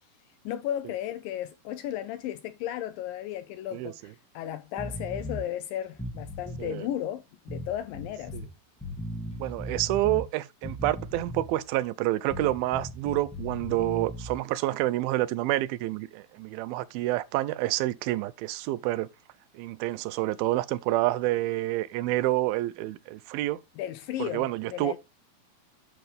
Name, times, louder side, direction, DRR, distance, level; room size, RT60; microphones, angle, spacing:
voice 1, 0.5-8.4 23.8-25.0, left 11 dB, 80° left, 2.1 m, -34 dB
sound 1, 4.8-5.4 5.9-6.7 7.5-8.5 8.8-10.3 10.6-11.6 12.3-14.4, left 1 dB, 5° left, 1.0 m, -37 dB
voice 2, 9.4-19.1 19.5-23.6 24.2-24.9, right 16 dB, 80° right, 2.3 m, -28 dB
10.0 x 5.8 x 3.4 m
omnidirectional pair, 4.4 m